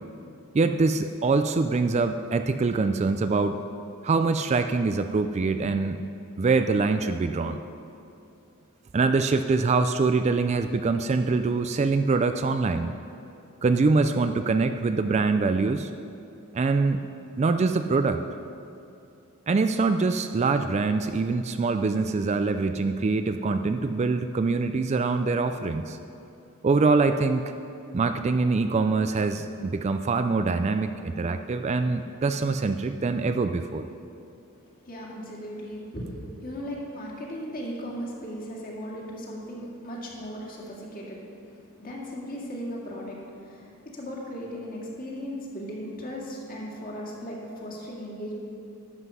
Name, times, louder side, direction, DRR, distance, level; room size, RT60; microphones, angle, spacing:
voice 1, 0.5-3.6 4.0-6.0 6.4-7.6 8.9-12.9 13.6-15.9 16.5-17.0 17.4-18.2 19.5-26.0 26.6-27.6 27.9-33.9, right 3 dB, 30° right, 8 dB, 0.3 m, -24 dB
voice 2, 34.8-48.3, equal, 40° left, -3 dB, 2.1 m, -37 dB
12.0 x 7.8 x 5.5 m, 2.7 s
head